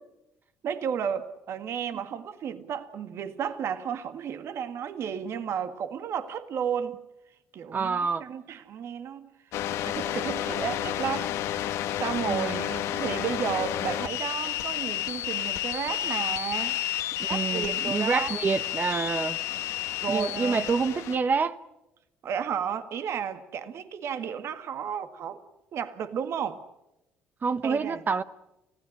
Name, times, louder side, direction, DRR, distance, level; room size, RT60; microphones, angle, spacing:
voice 1, 0.6-7.0 7.5-9.3 9.8-11.3 12.0-16.8 17.3-18.4 20.0-20.7 22.2-25.4 25.7-26.6 27.6-28.0, right 8 dB, 60° right, 1.9 m, -33 dB
voice 2, 7.7-8.3 12.3-12.6 17.2-19.4 20.1-21.6 27.4-28.2, right 5 dB, 35° right, 1.1 m, -27 dB
sound 1, 9.5-21.2, left 12 dB, 75° left, 1.4 m, -31 dB
29.5 x 16.0 x 9.9 m
supercardioid pair, 70°, 5 cm